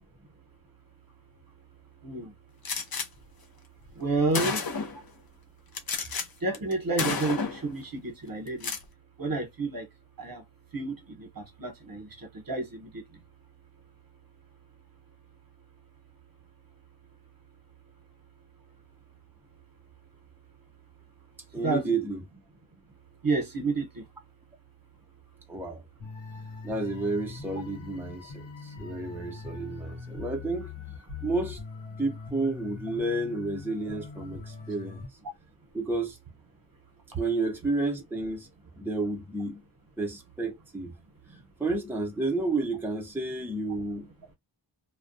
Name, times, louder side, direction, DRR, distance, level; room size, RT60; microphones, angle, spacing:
Gunshot gunfire, 2.6-3.1 3.9-4.0 4.3-5.0 5.7-6.3 6.5-6.7 7.0-7.7 8.5-8.8, left 5 dB, 55° left, 0.7 m, -30 dB
voice 1, 4.0-4.6 6.4-8.7 9.2-9.9 10.2-10.4 10.7-12.1 12.5-13.0 21.6-21.8 23.2-23.8, right 3 dB, 50° right, 0.9 m, -30 dB
voice 2, 21.5-22.2 25.5-25.8 26.6-30.7 31.2-31.6 32.0-35.0 35.7-36.2 37.2-38.5 38.8-39.6 40.0-40.9 41.6-44.1, right 2 dB, 5° right, 0.7 m, -31 dB
sound 1, 26.0-35.1, left 5 dB, 85° left, 0.8 m, -42 dB
2.2 x 2.2 x 2.5 m
wide cardioid pair, 40°, 45 cm